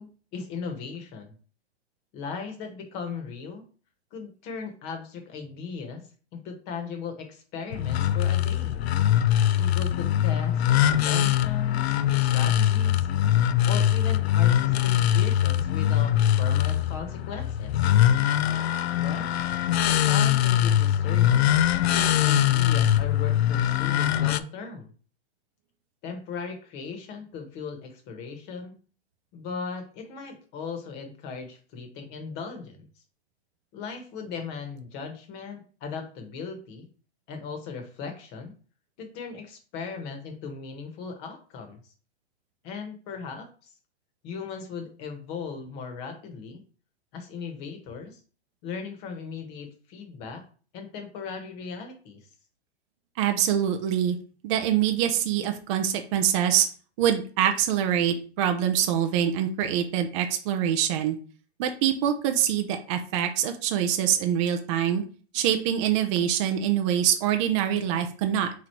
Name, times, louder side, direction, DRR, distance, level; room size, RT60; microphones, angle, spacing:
voice 1, 0.0-1.3 2.1-3.6 4.1-6.0 6.3-8.8 9.5-12.0 12.3-13.1 13.7-17.8 19.0-19.3 19.8-21.6 21.9-24.9 26.0-28.7 29.3-32.9 33.7-36.9 37.3-38.5 39.0-41.8 42.6-43.5 44.2-46.6 47.1-48.2 48.6-50.4 50.7-52.3, left 5 dB, 30° left, 5 dB, 1.1 m, -37 dB
sound 1, 7.7-24.4, left 11 dB, 70° left, 0.5 m, -22 dB
voice 2, 53.2-54.2 54.4-56.7 57.0-61.2 61.6-65.0 65.3-68.5, right 10 dB, 30° right, 6 dB, 0.4 m, -24 dB
3.9 x 3.1 x 4.4 m, 0.40 s
hypercardioid pair, 145°, 32 cm